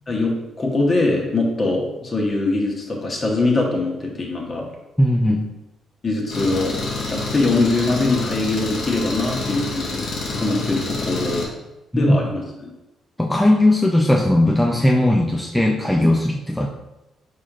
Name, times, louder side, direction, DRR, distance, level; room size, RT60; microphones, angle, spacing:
voice 1, 0.1-4.6 6.0-6.7 7.1-10.0 10.4-11.4 12.0-12.4, left 2 dB, 35° left, -1 dB, 1.1 m, -22 dB
voice 2, 5.0-5.5 11.9-12.2 13.2-16.7, left 1 dB, 5° left, 0 dB, 0.4 m, -18 dB
Engine, 6.3-11.4, left 3 dB, 70° left, 1.2 m, -27 dB
4.7 x 4.1 x 2.5 m, 0.98 s
cardioid pair, 90°, 0 cm